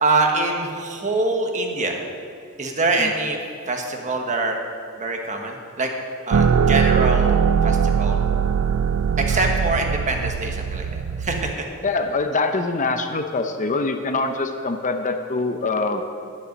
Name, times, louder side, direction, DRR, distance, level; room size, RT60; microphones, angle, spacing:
voice 1, 0.0-2.0 2.6-3.4 3.7-4.6 5.0-5.9 6.3-8.2 9.2-11.5, right 3 dB, 35° right, 2 dB, 1.3 m, -24 dB
sound 1, 6.3-11.5, right 6 dB, 70° right, 0.4 m, -20 dB
voice 2, 11.8-16.0, left 3 dB, 35° left, 6 dB, 0.7 m, -24 dB
10.5 x 10.0 x 5.3 m, 2.3 s
head